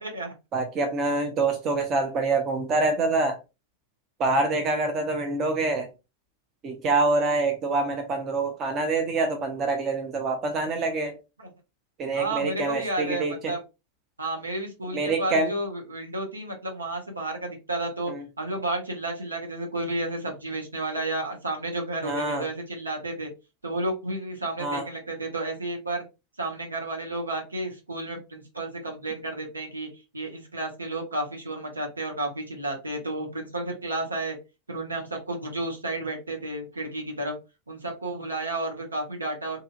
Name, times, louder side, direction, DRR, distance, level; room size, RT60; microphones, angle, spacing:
voice 1, 0.0-0.3 11.4-11.5 12.1-13.6 14.2-23.3 23.6-26.0 26.4-29.9 30.1-34.4 34.7-37.4 37.7-39.6, right 2 dB, 80° right, 0.9 m, -32 dB
voice 2, 0.5-3.4 4.2-5.9 6.6-11.1 12.0-13.5 14.9-15.5 18.1-18.2 22.0-22.4 24.6-24.8, right 3 dB, 30° right, 0.7 m, -26 dB
2.8 x 2.6 x 2.5 m
figure-of-eight pair, 90°, 0 cm